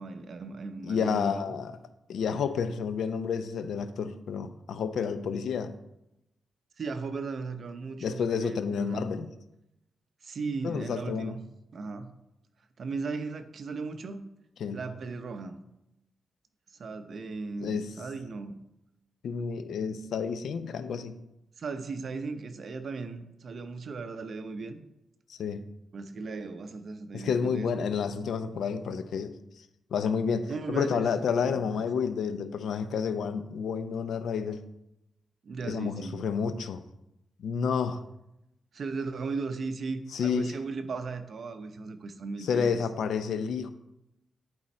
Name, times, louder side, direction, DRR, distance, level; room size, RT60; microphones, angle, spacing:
voice 1, 0.0-1.5 6.8-9.0 10.2-11.4 11.7-12.1 12.8-14.3 14.7-15.6 16.8-18.6 21.6-24.8 25.9-27.9 30.5-31.1 31.4-31.7 35.4-36.2 38.7-42.8, right 4 dB, 50° right, 8 dB, 0.7 m, -37 dB
voice 2, 0.8-1.7 2.1-5.7 8.0-9.3 10.6-11.3 14.6-14.8 17.6-17.9 19.2-21.2 25.3-25.6 27.1-29.7 29.9-34.6 35.6-36.8 37.4-38.0 40.1-40.5 42.4-43.7, left 6 dB, 85° left, 11 dB, 0.5 m, -30 dB
9.8 x 4.3 x 4.3 m, 0.88 s
wide cardioid pair, 135°, 0 cm